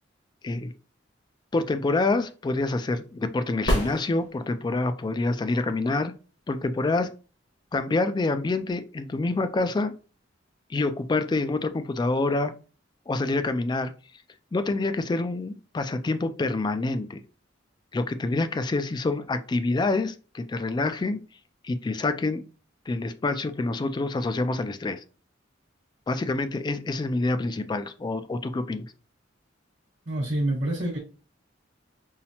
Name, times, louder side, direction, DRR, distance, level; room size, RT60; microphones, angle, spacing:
voice 1, 1.5-6.1 6.5-7.1 7.7-9.9 10.7-12.5 13.1-13.9 14.5-17.2 17.9-21.2 21.6-22.4 22.9-25.0 26.1-28.9, left 2 dB, 25° left, 0.3 m, -27 dB
sound 1, 3.6-4.8 8.7-8.8, equal, 60° left, 1.4 m, -27 dB
voice 2, 30.1-31.0, right 1 dB, 65° right, 1.2 m, -27 dB
5.5 x 2.1 x 2.8 m
head